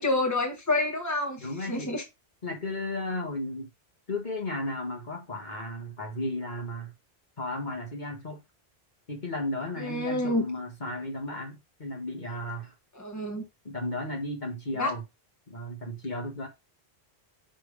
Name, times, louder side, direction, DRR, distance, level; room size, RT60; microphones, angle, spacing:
voice 1, 0.0-2.0 9.8-10.4 13.0-13.4 14.8-14.9, left 2 dB, 15° left, 1.5 m, -28 dB
voice 2, 1.4-1.9 2.4-3.7 4.1-6.9 7.4-8.4 9.1-12.7 13.6-15.0 15.5-16.5, left 1 dB, 45° left, 1.5 m, -34 dB
6.2 x 3.4 x 4.8 m
omnidirectional pair, 1.1 m